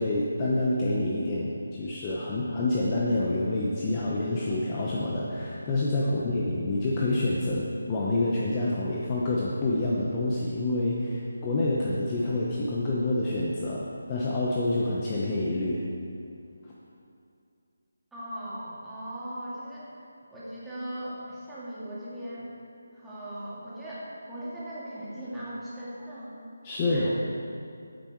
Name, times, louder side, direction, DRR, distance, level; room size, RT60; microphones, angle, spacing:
voice 1, 0.0-15.8 26.6-27.1, left 2 dB, 20° left, -5 dB, 1.0 m, -27 dB
voice 2, 18.1-20.0 20.3-22.5 22.9-26.3 26.9-27.1, right 1 dB, 5° right, -11 dB, 2.1 m, -39 dB
12.0 x 9.5 x 4.7 m, 2.5 s
figure-of-eight pair, 170°, 0 cm